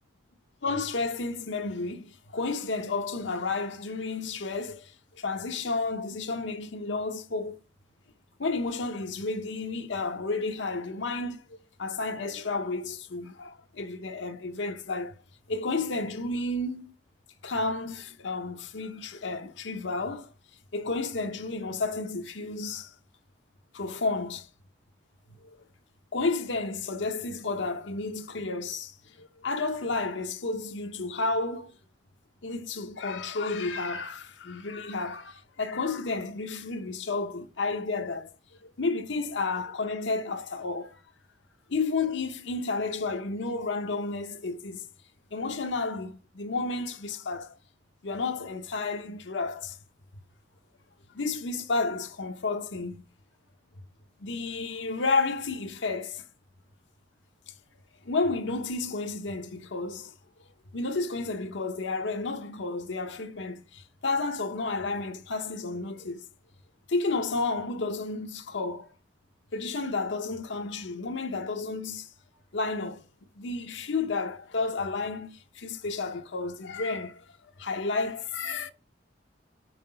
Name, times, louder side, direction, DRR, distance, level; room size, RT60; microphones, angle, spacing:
voice 1, 0.6-7.6 8.4-15.1 15.5-16.9 17.4-20.3 20.7-22.9 23.7-24.5 25.4-25.6 26.1-31.7 32.4-38.3 38.6-41.0 41.7-44.9 45.3-47.6 48.0-49.8 51.1-53.0 54.2-56.2 58.0-60.1 60.7-66.3 66.9-68.9 69.5-72.1 72.5-73.0 73.3-77.2 77.6-78.7, left 3 dB, 75° left, 0.9 m, -31 dB
5.9 x 4.7 x 5.5 m
head